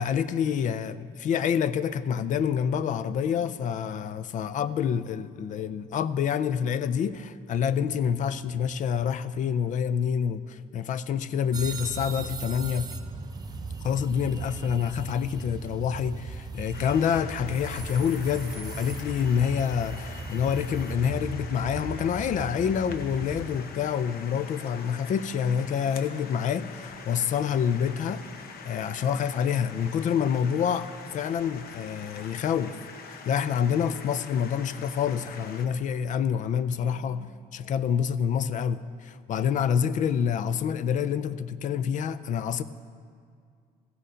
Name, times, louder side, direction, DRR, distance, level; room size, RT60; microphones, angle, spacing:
voice 1, 0.0-12.9 13.8-28.2 28.6-30.9 31.1-32.8 33.1-42.6, left 8 dB, 55° left, 15 dB, 0.4 m, -27 dB
sound 1, 11.5-23.6, right 4 dB, 25° right, 0.5 m, -38 dB
sound 2, 16.7-35.7, left 5 dB, 70° left, 0.8 m, -44 dB
15.5 x 6.8 x 5.0 m, 2.2 s
cardioid pair, 150°, 16 cm